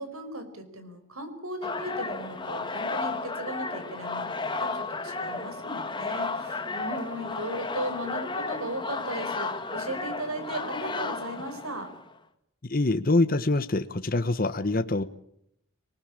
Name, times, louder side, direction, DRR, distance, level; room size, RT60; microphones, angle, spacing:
voice 1, 0.0-11.9, right 1 dB, 85° right, 9 dB, 5.0 m, -36 dB
sound 1, 1.6-12.1, left 3 dB, 20° left, 1.5 m, -33 dB
voice 2, 12.6-15.0, left 2 dB, 40° left, 10 dB, 1.0 m, -25 dB
26.0 x 19.0 x 8.7 m, 0.75 s
head